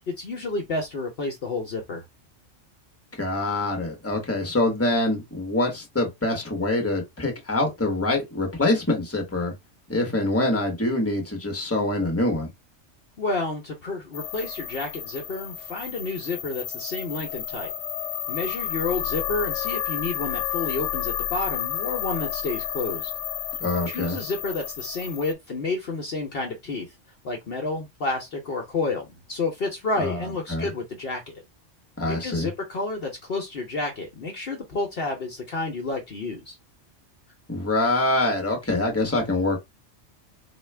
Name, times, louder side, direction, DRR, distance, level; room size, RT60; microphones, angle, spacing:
voice 1, 0.1-2.0 13.2-17.7 18.3-23.1 23.9-26.9 27.2-31.4 32.1-36.6, left 3 dB, 55° left, 0.9 m, -30 dB
voice 2, 3.2-9.5 9.9-12.5 23.6-24.2 30.0-30.2 30.5-30.7 32.0-32.5 37.5-39.6, left 2 dB, 10° left, 1.1 m, -25 dB
sound 1, 14.1-25.3, left 11 dB, 80° left, 1.0 m, -31 dB
4.1 x 2.3 x 3.2 m
omnidirectional pair, 1.3 m